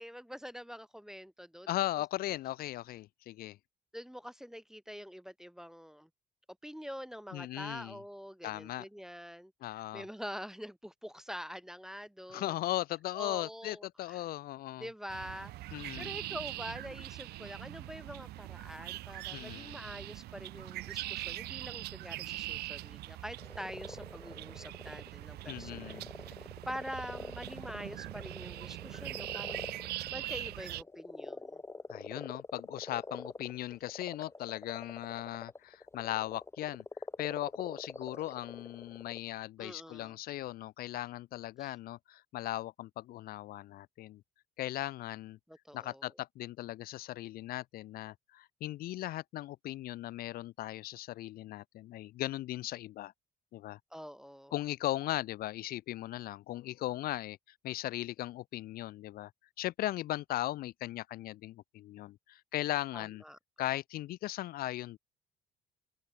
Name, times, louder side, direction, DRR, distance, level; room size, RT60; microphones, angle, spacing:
voice 1, 0.0-1.9 3.9-6.1 6.6-12.6 13.1-14.2 14.8-26.4 26.6-31.6 39.6-40.2 41.6-41.7 45.5-46.1 53.9-54.5 62.9-63.4, equal, 5° right, 0.5 m, -45 dB
voice 2, 1.7-3.6 7.3-8.0 8.4-8.9 9.6-10.0 12.3-14.9 15.7-16.1 19.3-19.9 25.5-26.1 31.9-36.8 37.2-44.2 44.6-45.4 45.7-53.1 53.5-53.8 54.5-57.4 57.6-59.3 59.6-63.2 63.6-65.0, left 15 dB, 60° left, 0.4 m, -38 dB
sound 1, 15.1-30.8, right 17 dB, 75° right, 0.6 m, -42 dB
sound 2, 23.4-39.2, left 3 dB, 15° left, 1.6 m, -46 dB
open air
cardioid pair, 110°, 17 cm